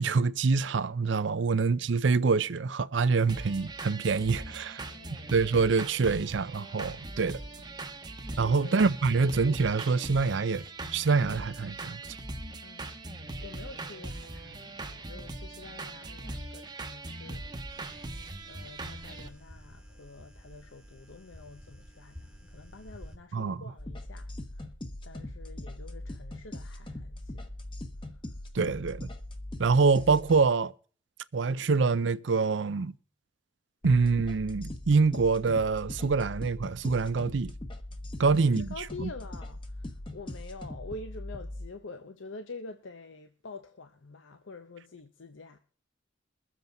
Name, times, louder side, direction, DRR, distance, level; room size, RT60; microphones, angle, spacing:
voice 1, 0.0-4.8 5.3-7.4 8.4-10.6 10.9-12.0 23.3-23.6 28.5-29.1 29.6-30.7 31.3-32.9 33.8-37.5 38.2-38.7 39.0-39.1, right 4 dB, 70° right, 0.5 m, -25 dB
sound 1, 3.3-19.3, right 2 dB, 25° right, 1.0 m, -40 dB
voice 2, 4.8-5.3 8.4-8.8 9.1-9.2 12.6-13.0 13.4-17.8 18.5-24.7 25.0-27.5 38.2-45.6, left 3 dB, 85° left, 0.8 m, -47 dB
sound 2, 17.7-23.2, equal, 5° right, 1.2 m, -50 dB
sound 3, 23.8-30.4 33.8-41.7, left 1 dB, 25° left, 1.0 m, -41 dB
22.5 x 7.5 x 3.9 m
head